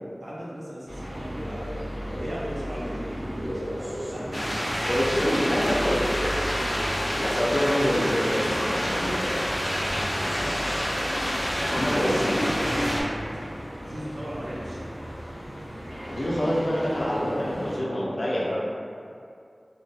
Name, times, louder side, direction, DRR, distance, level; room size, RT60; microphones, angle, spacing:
voice 1, 0.2-1.7 2.1-5.7 9.8-10.1 11.6-13.3 13.8-14.8, equal, 70° right, -7 dB, 0.6 m, -37 dB
sound 1, 0.9-17.8, equal, 30° right, 1.0 m, -34 dB
sound 2, 4.3-13.0, equal, 15° left, 0.4 m, -28 dB
voice 2, 4.8-6.0 7.1-9.3 10.4-10.7 11.7-12.5 16.1-18.6, equal, 70° left, -6 dB, 0.5 m, -26 dB
2.2 x 2.1 x 2.7 m, 2.4 s
wide cardioid pair, 50°, 0 cm